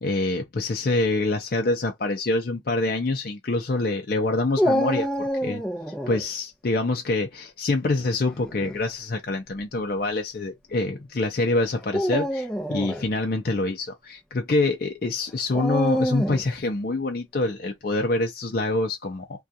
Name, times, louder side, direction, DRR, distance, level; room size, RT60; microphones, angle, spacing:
voice 1, 0.0-5.6 6.1-19.3, left 2 dB, 55° left, 0.5 m, -26 dB
Dog, 4.6-6.2 8.3-8.8 9.6-9.7 11.8-13.1 15.5-16.5, equal, 5° left, 0.6 m, -26 dB
2.4 x 2.3 x 2.7 m
head